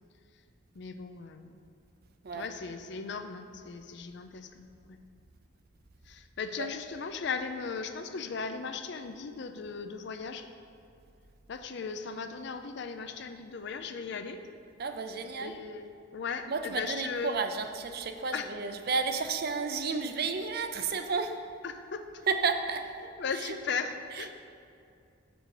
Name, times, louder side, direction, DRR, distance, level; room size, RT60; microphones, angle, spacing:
voice 1, 0.7-1.5 2.3-5.0 6.1-10.5 11.5-14.4 15.4-17.4 18.3-18.5 21.6-22.2 23.2-24.3, left 5 dB, 65° left, 8 dB, 0.5 m, -37 dB
voice 2, 14.8-15.6 16.5-21.4 22.2-23.6 24.1-24.3, right 4 dB, 55° right, 7 dB, 0.5 m, -32 dB
6.7 x 6.1 x 4.8 m, 2.5 s
head